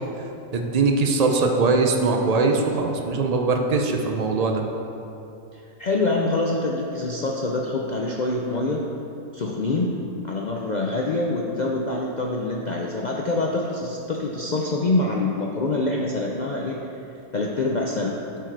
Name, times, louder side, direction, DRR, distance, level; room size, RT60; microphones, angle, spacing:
voice 1, 0.5-4.6, right 3 dB, 65° right, 3 dB, 0.3 m, -21 dB
voice 2, 5.5-8.8 9.3-10.0 10.2-16.8 17.3-18.2, left 2 dB, 75° left, -1 dB, 0.4 m, -25 dB
11.5 x 4.7 x 4.6 m, 2.8 s
omnidirectional pair, 1.6 m